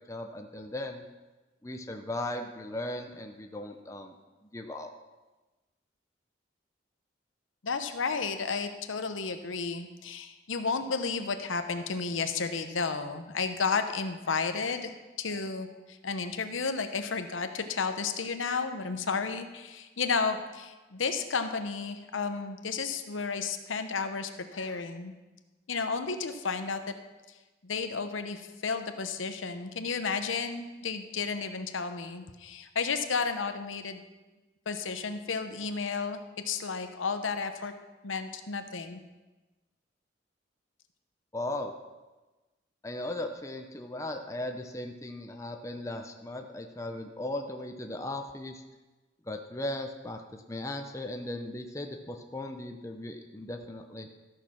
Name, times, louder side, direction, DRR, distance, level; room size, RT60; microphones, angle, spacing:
voice 1, 0.1-1.0 1.6-4.2 4.4-4.9 41.3-41.7 42.8-48.6 49.2-54.1, left 1 dB, 15° left, 4 dB, 0.7 m, -37 dB
voice 2, 7.6-25.1 25.7-26.8 27.6-34.0 34.7-37.7 38.0-39.0, left 5 dB, 90° left, 8 dB, 0.9 m, -32 dB
13.5 x 6.6 x 5.9 m, 1.2 s
head